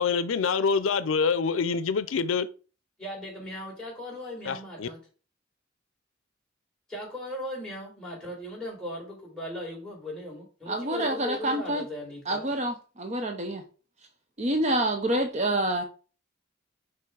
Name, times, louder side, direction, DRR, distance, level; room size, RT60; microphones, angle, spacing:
voice 1, 0.0-2.5 4.4-4.9, left 5 dB, 85° left, 0.5 m, -26 dB
voice 2, 3.0-5.0 6.9-12.4, left 1 dB, 5° left, 4.0 m, -38 dB
voice 3, 10.7-11.8 12.3-13.6 14.4-15.8, right 1 dB, 35° right, 0.8 m, -27 dB
5.8 x 5.0 x 4.7 m
head